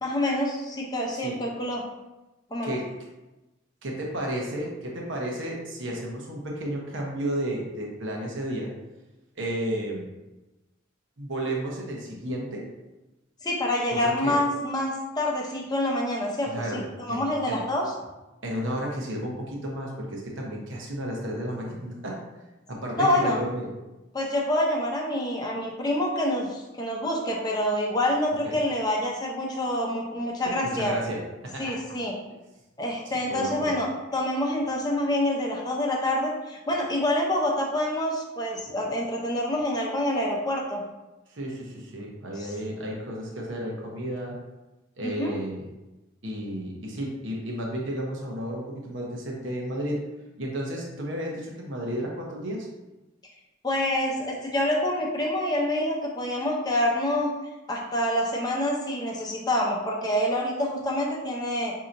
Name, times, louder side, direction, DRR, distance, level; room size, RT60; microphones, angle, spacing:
voice 1, 0.0-1.8 2.5-2.8 13.4-17.9 23.0-23.4 24.1-30.9 31.6-32.1 32.8-40.8 42.4-42.5 45.0-45.4 53.6-57.3 57.7-61.7, left 1 dB, 20° left, -2 dB, 0.6 m, -27 dB
voice 2, 3.8-8.7 9.4-10.1 11.2-12.7 13.9-14.4 16.5-16.8 17.1-17.6 18.4-22.2 22.7-23.7 28.4-28.6 30.4-31.8 33.3-33.7 41.3-44.4 45.0-45.6 46.2-50.0 50.4-52.7, right 1 dB, 65° right, -2 dB, 0.9 m, -32 dB
5.5 x 2.8 x 2.6 m, 1.0 s
head